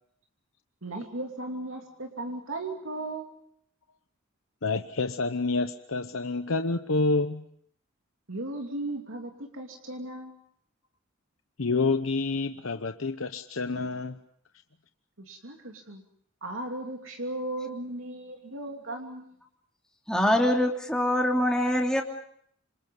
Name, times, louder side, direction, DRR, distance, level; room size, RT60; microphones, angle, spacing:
voice 1, 0.8-3.3 8.3-10.4 15.2-16.0 16.4-19.4, right 2 dB, 70° right, 2 dB, 2.8 m, -36 dB
voice 2, 4.6-7.4 11.6-14.2, left 3 dB, 75° left, 8 dB, 0.9 m, -28 dB
voice 3, 20.1-22.0, left 1 dB, 5° left, 0 dB, 3.1 m, -24 dB
27.5 x 27.0 x 5.4 m, 0.66 s
head